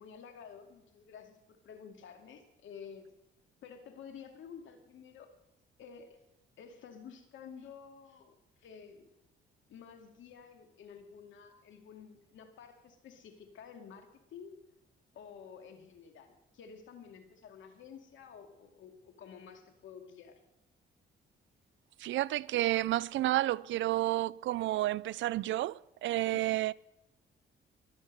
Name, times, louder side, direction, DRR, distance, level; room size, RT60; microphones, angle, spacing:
voice 1, 0.0-3.1 3.6-5.3 5.8-6.2 6.6-8.3 8.6-9.1 9.7-14.6 15.1-20.4 26.3-26.6, left 7 dB, 75° left, 2.3 m, -51 dB
voice 2, 22.0-26.7, right 15 dB, 75° right, 0.4 m, -31 dB
21.5 x 7.3 x 6.7 m
cardioid pair, 90°, 20 cm